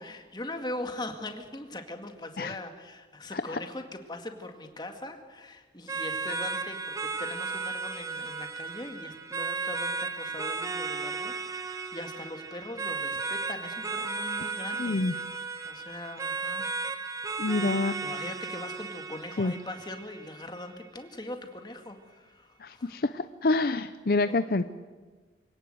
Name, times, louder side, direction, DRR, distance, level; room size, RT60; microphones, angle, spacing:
voice 1, 0.0-15.2 15.6-16.7 17.6-23.0 24.2-24.4, left 1 dB, 25° left, 5 dB, 1.9 m, -41 dB
sound 1, 5.9-20.8, right 4 dB, 20° right, 1.0 m, -35 dB
voice 2, 14.8-15.1 17.4-17.9 19.4-19.5 22.6-24.6, left 3 dB, 55° left, 11 dB, 0.6 m, -27 dB
25.5 x 17.5 x 7.8 m, 1.4 s
head